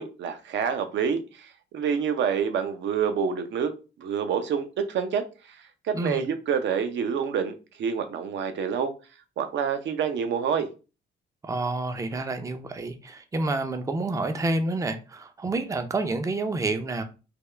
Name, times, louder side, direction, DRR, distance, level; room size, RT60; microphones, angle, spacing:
voice 1, 0.0-3.7 4.0-8.9 9.4-10.7, right 7 dB, 65° right, 0.6 m, -27 dB
voice 2, 11.4-17.0, right 2 dB, 15° right, 0.4 m, -29 dB
3.4 x 2.3 x 3.2 m
cardioid pair, 90°, 20 cm